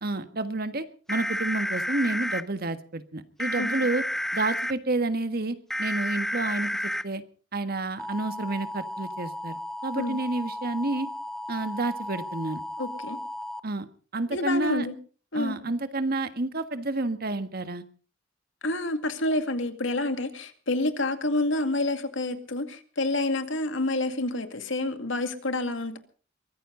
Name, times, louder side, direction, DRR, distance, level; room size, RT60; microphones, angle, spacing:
voice 1, 0.0-4.0 4.3-6.7 7.0-7.2 7.5-9.6 9.8-11.1 11.5-12.6 13.6-13.9 14.1-14.9 15.3-17.8, right 2 dB, 55° right, 1.5 m, -29 dB
sound 1, 1.1-2.4 3.4-4.7 5.7-7.0 8.0-13.6, left 1 dB, ahead, 0.7 m, -32 dB
voice 2, 12.8-13.2 14.3-14.9 15.3-15.6 18.6-26.0, left 2 dB, 85° left, 2.2 m, -28 dB
23.0 x 15.0 x 3.9 m
head